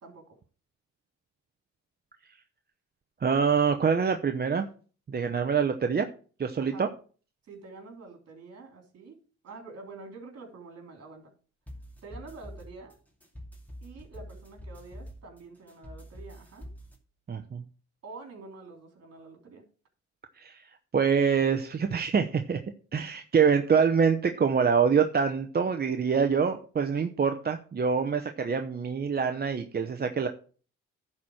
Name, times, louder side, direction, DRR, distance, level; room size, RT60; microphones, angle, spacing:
voice 1, 0.0-0.4 6.6-6.9 7.4-9.2 9.4-11.3 12.0-13.0 13.8-16.7 18.0-19.6, right 3 dB, 55° right, 3 dB, 3.3 m, -47 dB
voice 2, 3.2-4.7 5.1-6.1 6.4-6.9 17.3-17.6 20.4-22.6 22.9-30.3, right 6 dB, 30° right, 6 dB, 0.8 m, -25 dB
sound 1, 11.7-17.0, equal, 5° left, 2.6 m, -46 dB
10.5 x 4.4 x 6.4 m, 0.39 s
cardioid pair, 90°, 30 cm